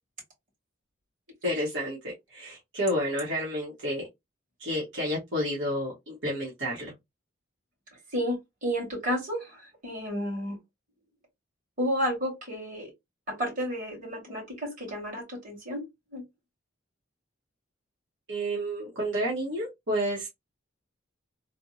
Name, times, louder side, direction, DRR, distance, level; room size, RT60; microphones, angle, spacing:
voice 1, 1.4-4.1 4.6-6.9 18.3-20.3, equal, 65° right, 1.2 m, -30 dB
voice 2, 8.1-10.6 11.8-12.9 13.3-15.8 16.1-16.2, equal, 40° right, 2.0 m, -31 dB
3.4 x 2.0 x 2.6 m
head